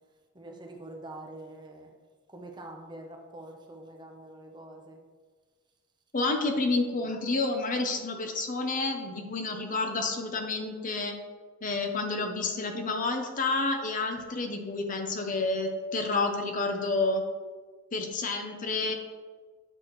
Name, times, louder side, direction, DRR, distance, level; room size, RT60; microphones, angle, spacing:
voice 1, 0.3-1.9 2.3-5.0, right 1 dB, 20° right, 2 dB, 0.8 m, -45 dB
voice 2, 6.1-11.1 11.6-17.2 17.9-18.9, left 3 dB, 40° left, 4 dB, 0.8 m, -29 dB
8.8 x 6.2 x 3.1 m, 1.4 s
head